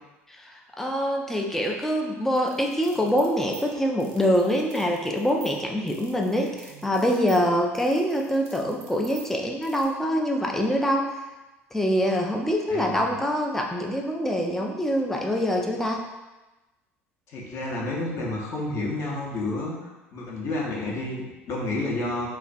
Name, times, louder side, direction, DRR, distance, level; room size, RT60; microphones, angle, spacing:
voice 1, 0.4-11.2 11.7-16.1, equal, 5° left, 0 dB, 0.3 m, -25 dB
sound 1, 2.4-9.9, right 5 dB, 60° right, 0.5 m, -47 dB
voice 2, 12.7-13.2 17.3-19.8 20.1-22.3, left 2 dB, 40° left, -3 dB, 0.7 m, -30 dB
2.3 x 2.1 x 2.5 m, 1.1 s
figure-of-eight pair, 70°, 7 cm